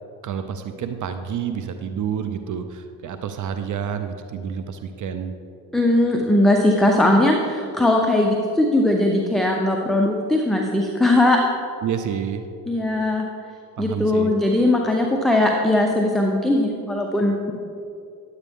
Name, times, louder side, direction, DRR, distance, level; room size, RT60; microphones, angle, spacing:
voice 1, 0.2-5.3 11.8-12.5 13.8-14.3, right 8 dB, 40° right, 8 dB, 0.6 m, -29 dB
voice 2, 5.7-11.4 12.7-13.3 13.8-17.5, left 1 dB, ahead, 1 dB, 0.7 m, -19 dB
10.5 x 8.1 x 3.6 m, 2.5 s
hypercardioid pair, 75°, 48 cm